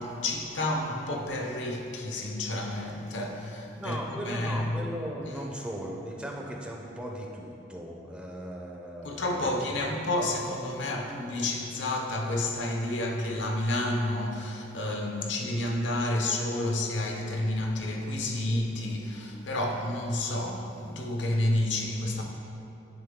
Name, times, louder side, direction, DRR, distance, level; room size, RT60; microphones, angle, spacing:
voice 1, 0.0-4.7 9.0-22.2, left 1 dB, 80° left, 0.7 m, -30 dB
voice 2, 3.7-9.8, equal, 5° right, 0.5 m, -38 dB
10.0 x 3.5 x 3.6 m
head